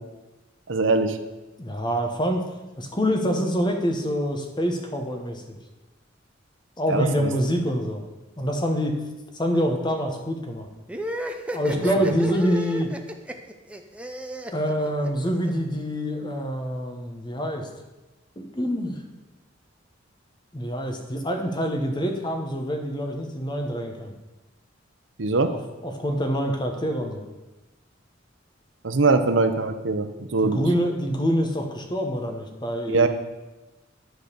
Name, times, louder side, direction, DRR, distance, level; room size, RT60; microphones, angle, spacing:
voice 1, 0.7-1.2 6.9-7.3 12.0-12.1 25.2-25.5 28.8-30.6 32.9-33.1, right 3 dB, 75° right, 8 dB, 0.7 m, -22 dB
voice 2, 1.6-2.4 2.8-5.6 6.8-8.0 8.4-9.0 9.3-10.7 11.5-12.9 14.5-17.7 18.4-19.0 20.5-24.1 25.5-27.2 30.4-33.1, equal, 25° left, 4 dB, 1.0 m, -26 dB
sound 1, 10.9-15.5, equal, 5° right, 0.5 m, -33 dB
11.0 x 3.9 x 6.7 m, 1.1 s
head